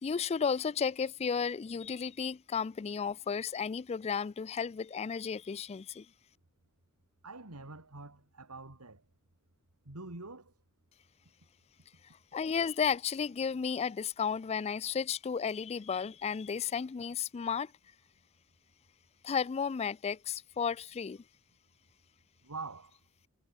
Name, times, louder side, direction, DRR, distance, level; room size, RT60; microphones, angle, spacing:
voice 1, 0.0-6.1 12.3-17.7 19.2-21.2, left 6 dB, 30° left, 0.3 m, -33 dB
voice 2, 7.2-9.0 9.8-10.5 22.4-23.0, right 3 dB, 85° right, 2.9 m, -45 dB
head